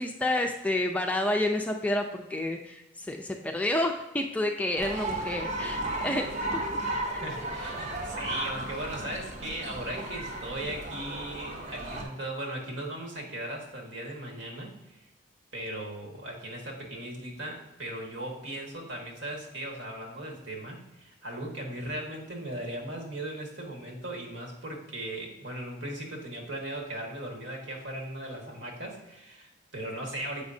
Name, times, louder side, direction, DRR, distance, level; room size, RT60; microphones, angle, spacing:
voice 1, 0.0-6.6 7.1-7.2, left 1 dB, 5° left, 3 dB, 0.3 m, -29 dB
sound 1, 4.8-12.0, right 1 dB, 40° right, 0.8 m, -34 dB
voice 2, 7.2-15.0 15.5-30.4, right 1 dB, 75° right, 0 dB, 1.5 m, -38 dB
7.0 x 5.2 x 2.6 m, 0.97 s
head